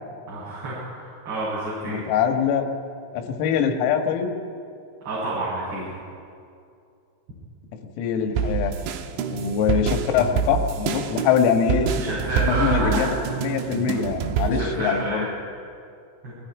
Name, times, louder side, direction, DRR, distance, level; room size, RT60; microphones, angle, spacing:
voice 1, 0.3-2.0 5.0-5.9 11.9-13.4 14.4-15.2 16.2-16.3, right 2 dB, 50° right, -10 dB, 9.4 m, -29 dB
voice 2, 1.9-2.7 3.1-4.3 8.0-8.7 9.3-11.9 12.4-13.2 13.4-15.3, left 7 dB, 90° left, 4 dB, 4.2 m, -23 dB
sound 1, 8.3-14.5, right 7 dB, 75° right, 3.0 m, -27 dB
30.0 x 22.0 x 4.9 m, 2.5 s
omnidirectional pair, 5.9 m